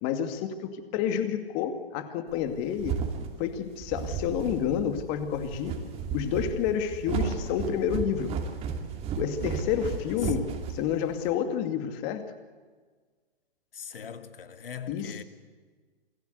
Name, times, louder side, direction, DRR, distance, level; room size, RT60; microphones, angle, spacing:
voice 1, 0.0-2.9 3.4-5.7 6.1-8.3 9.2-12.3 14.9-15.1, left 8 dB, 30° left, 2.4 m, -29 dB
sound 1, 2.4-11.3, right 6 dB, 20° right, 2.7 m, -34 dB
voice 2, 13.7-15.2, left 7 dB, 65° left, 2.3 m, -41 dB
28.5 x 21.0 x 8.2 m
hypercardioid pair, 135°, 30 cm